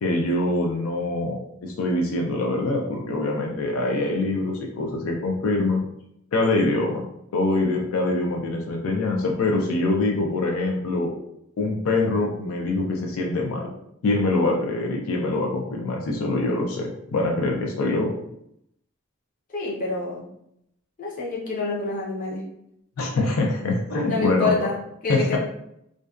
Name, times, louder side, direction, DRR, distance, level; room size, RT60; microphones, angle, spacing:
voice 1, 0.0-5.8 6.3-7.0 7.3-11.1 11.6-13.7 14.0-18.1 23.0-24.5 25.1-25.4, left 2 dB, 80° left, 0 dB, 0.4 m, -24 dB
voice 2, 19.5-20.2 21.0-22.4 24.1-24.7 25.0-25.4, left 3 dB, 40° left, -4 dB, 0.6 m, -27 dB
2.5 x 2.1 x 2.3 m, 0.76 s
head